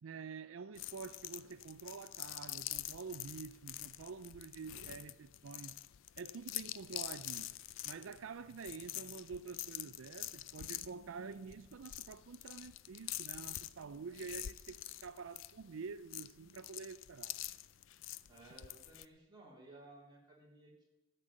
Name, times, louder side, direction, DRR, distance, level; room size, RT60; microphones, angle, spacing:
voice 1, 0.0-5.7 6.2-7.5 7.8-17.4, right 5 dB, 90° right, 0.5 m, -48 dB
sound 1, 0.7-19.1, left 14 dB, 70° left, 0.4 m, -46 dB
voice 2, 18.3-20.8, right 2 dB, 20° right, 3.7 m, -57 dB
13.0 x 6.8 x 8.8 m
head